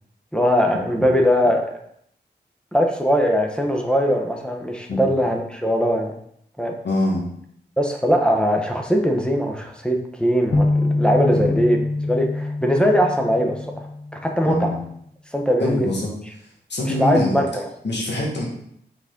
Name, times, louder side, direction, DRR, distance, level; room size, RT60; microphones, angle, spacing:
voice 1, 0.3-1.7 2.7-6.1 6.6-6.7 7.8-13.9 14.1-14.7 15.3-15.9 16.8-17.7, equal, 5° left, 2 dB, 1.0 m, -21 dB
voice 2, 6.8-7.2 11.3-11.5 14.4-14.8 15.6-16.1 16.7-17.4 17.8-18.4, left 1 dB, 75° left, -3 dB, 1.9 m, -24 dB
sound 1, 10.5-14.5, left 2 dB, 45° left, 0.8 m, -24 dB
5.9 x 4.1 x 3.8 m, 0.69 s
cardioid pair, 65°, 18 cm